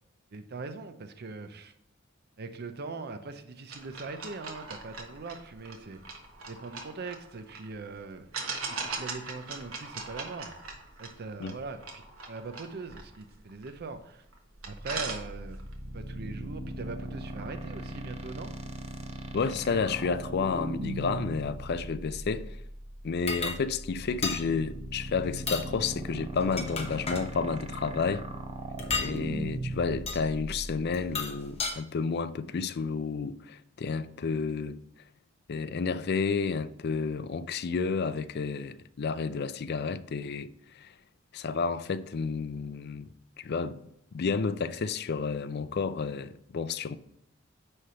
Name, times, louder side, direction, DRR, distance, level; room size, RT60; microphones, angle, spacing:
voice 1, 0.3-1.7 2.4-6.0 6.5-8.3 8.7-10.6 11.0-14.3 14.7-15.6 15.9-18.5, right 4 dB, 50° right, 0.6 m, -41 dB
sound 1, 3.7-7.7 8.3-14.0 14.3-14.4 14.6-15.7, right 4 dB, 85° right, 1.4 m, -40 dB
sound 2, 14.6-31.8, right 1 dB, 30° right, 0.9 m, -39 dB
voice 2, 19.3-22.6 23.0-28.3 29.0-34.8 35.5-40.9 41.3-43.1 43.4-43.8 44.1-47.0, left 5 dB, 50° left, 0.4 m, -31 dB
sound 3, 23.3-23.6 24.2-24.4 25.4-25.7 26.4-27.3 28.8-29.1 30.1-30.2 30.9-31.8, left 4 dB, 30° left, 1.1 m, -32 dB
9.7 x 3.3 x 5.5 m
head